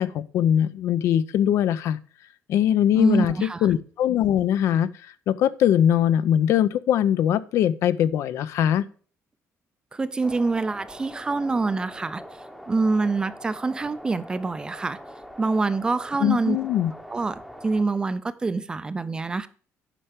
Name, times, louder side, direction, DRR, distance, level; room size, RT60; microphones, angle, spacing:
voice 1, 0.0-2.0 2.5-3.4 3.6-4.9 5.3-8.8 16.2-16.9, left 10 dB, 65° left, 0.5 m, -21 dB
voice 2, 2.9-3.7 9.9-12.2 12.7-15.0 15.4-16.6 17.1-19.5, right 3 dB, 15° right, 0.4 m, -25 dB
sound 1, 10.2-17.8, equal, 5° left, 0.8 m, -43 dB
9.9 x 5.7 x 4.9 m
cardioid pair, 175°, 5 cm